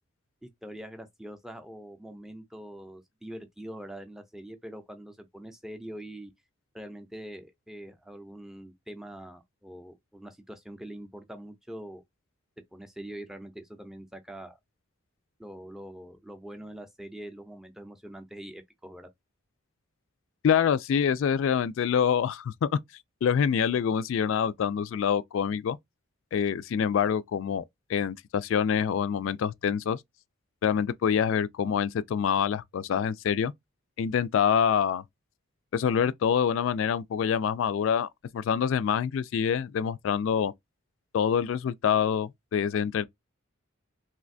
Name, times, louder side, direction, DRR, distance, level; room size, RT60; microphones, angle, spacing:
voice 1, 0.4-6.3 6.7-12.0 12.7-14.6 15.4-19.1, right 1 dB, ahead, 0.4 m, -43 dB
voice 2, 20.4-22.7 23.2-25.8 26.3-27.6 27.9-30.0 30.6-33.5 34.0-35.0 35.7-40.5 41.1-43.0, left 7 dB, 65° left, 0.3 m, -26 dB
3.2 x 2.6 x 2.6 m
head